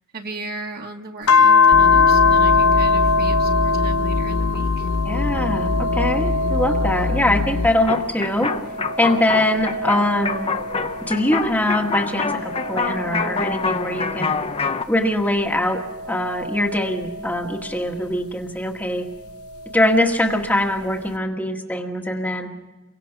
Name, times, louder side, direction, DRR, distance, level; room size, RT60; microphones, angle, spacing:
voice 1, 0.1-4.9, right 3 dB, 45° right, 2 dB, 2.2 m, -36 dB
sound 1, 1.3-8.0 8.4-11.3 11.9-14.7 15.5-17.9 19.3-20.3, left 4 dB, 85° left, 1.0 m, -22 dB
sound 2, 1.7-7.7, left 3 dB, 65° left, 0.8 m, -25 dB
voice 2, 5.0-8.5 9.0-10.5 11.1-14.3 14.9-15.8 16.1-19.0 19.7-22.5, left 1 dB, 10° left, 2 dB, 1.7 m, -22 dB
sound 3, 7.9-14.8, left 4 dB, 25° left, 0.9 m, -26 dB
29.5 x 24.0 x 5.9 m, 1.2 s
head